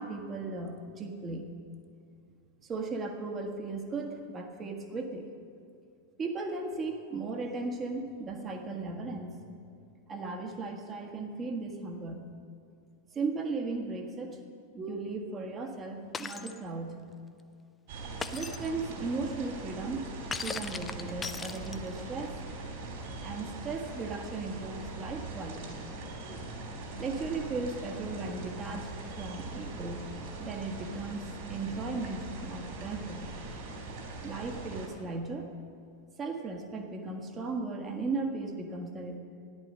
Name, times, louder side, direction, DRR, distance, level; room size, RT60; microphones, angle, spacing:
voice 1, 0.0-1.5 2.6-5.3 6.2-9.4 10.1-12.2 13.1-14.4 14.7-17.0 18.3-20.1 20.4-22.4 23.2-25.8 26.2-26.4 27.0-28.9 29.2-30.0 30.4-31.2 31.5-33.3 34.2-35.5 36.2-39.2, right 3 dB, 25° right, 3 dB, 1.7 m, -36 dB
Shatter, 16.1-16.6 18.2-18.7 20.3-22.0, left 5 dB, 15° left, 0.6 m, -38 dB
sound 1, 17.9-34.9, right 2 dB, 55° right, 3.3 m, -41 dB
13.5 x 11.0 x 6.5 m, 2.3 s
figure-of-eight pair, 90°, 0 cm